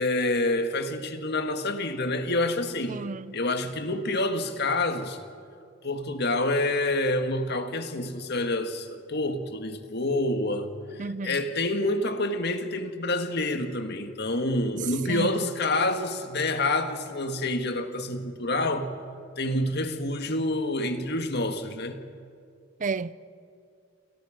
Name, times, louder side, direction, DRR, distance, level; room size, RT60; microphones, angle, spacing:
voice 1, 0.0-3.0 3.3-5.2 5.8-10.7 11.0-19.0 19.4-22.0, left 2 dB, 55° left, 1.8 m, -27 dB
voice 2, 2.9-3.3 11.0-11.4 15.1-15.4 22.8-23.1, right 4 dB, 40° right, 0.5 m, -31 dB
29.0 x 28.0 x 5.2 m
head